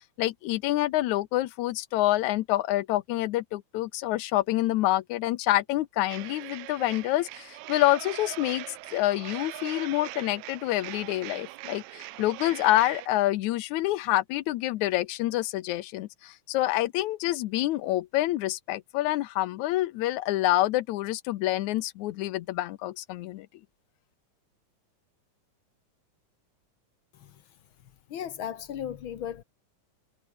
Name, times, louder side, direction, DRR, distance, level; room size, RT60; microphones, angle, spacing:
voice 1, 0.2-8.7 8.9-23.5, left 16 dB, 80° left, 2.0 m, -27 dB
sound 1, 6.1-13.1, right 19 dB, 75° right, 1.8 m, -41 dB
voice 2, 28.1-29.4, left 9 dB, 55° left, 1.5 m, -35 dB
omnidirectional pair, 3.5 m